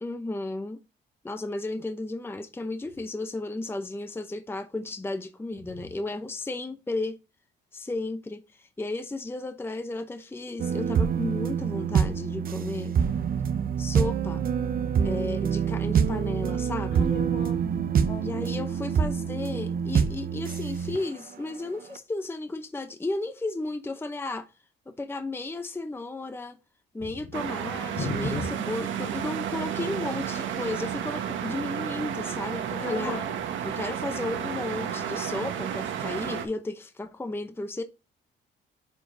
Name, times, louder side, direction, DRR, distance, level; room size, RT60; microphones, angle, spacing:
voice 1, 0.0-0.8 1.2-7.2 7.7-12.9 13.8-14.4 15.0-17.1 18.2-24.5 24.9-26.6 26.9-33.2 33.6-37.8, left 2 dB, 10° left, 0.7 m, -34 dB
sound 1, 10.6-21.3 22.0-22.1, right 7 dB, 45° right, 0.7 m, -26 dB
voice 2, 16.9-18.5 27.0-27.1 27.9-29.0 32.8-33.3, left 1 dB, 70° left, 3.2 m, -35 dB
sound 2, 27.3-36.5, right 9 dB, 75° right, 1.2 m, -32 dB
9.1 x 4.9 x 2.6 m
cardioid pair, 90°, 20 cm